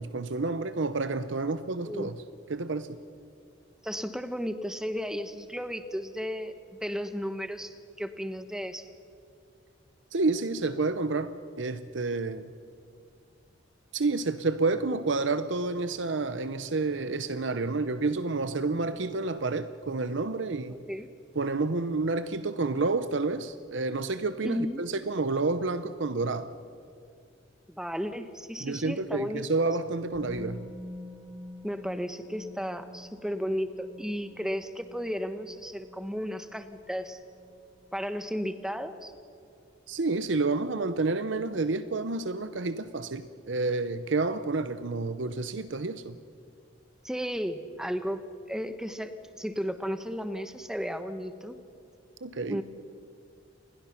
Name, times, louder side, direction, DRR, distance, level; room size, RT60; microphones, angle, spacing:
voice 1, 0.0-2.1 2.5-3.0 10.1-12.5 13.9-20.8 21.4-26.5 28.6-30.7 39.9-46.2 52.2-52.6, right 3 dB, 70° right, 12 dB, 0.8 m, -29 dB
voice 2, 3.8-6.6 6.8-8.9 20.7-21.1 24.4-24.8 27.7-29.4 31.6-37.2 37.9-39.1 47.0-48.2 48.5-51.6 52.5-52.6, equal, 5° right, 9 dB, 1.2 m, -34 dB
Musical instrument, 30.1-38.0 38.3-38.5, left 1 dB, 25° left, 6.8 m, -47 dB
28.5 x 21.5 x 5.9 m, 2.4 s
head